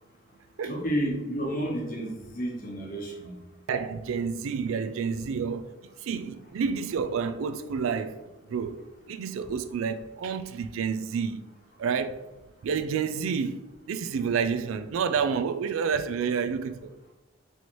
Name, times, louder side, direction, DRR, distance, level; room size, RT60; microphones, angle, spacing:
voice 1, 0.6-3.3, right 1 dB, 45° left, 0.8 m, -31 dB
voice 2, 3.7-5.7 6.0-8.2 8.5-11.4 11.8-12.2 12.6-16.9, right 6 dB, 85° right, 0.3 m, -29 dB
4.3 x 3.1 x 2.9 m
head